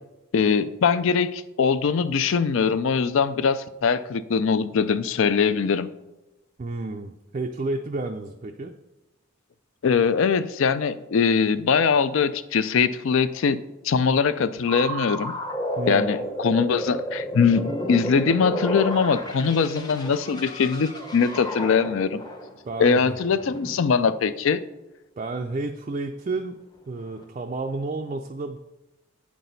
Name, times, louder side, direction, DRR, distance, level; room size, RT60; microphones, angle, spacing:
voice 1, 0.3-5.9 9.8-15.3 15.9-22.2 22.8-24.6, left 5 dB, 60° left, 14 dB, 0.4 m, -22 dB
voice 2, 6.6-8.7 15.8-16.1 22.6-23.2 25.2-26.6 26.9-28.6, right 3 dB, 35° right, 3 dB, 0.3 m, -31 dB
sound 1, 14.7-24.0 27.0-27.3, equal, 20° left, 0.8 m, -32 dB
8.3 x 6.0 x 4.0 m, 1.0 s
head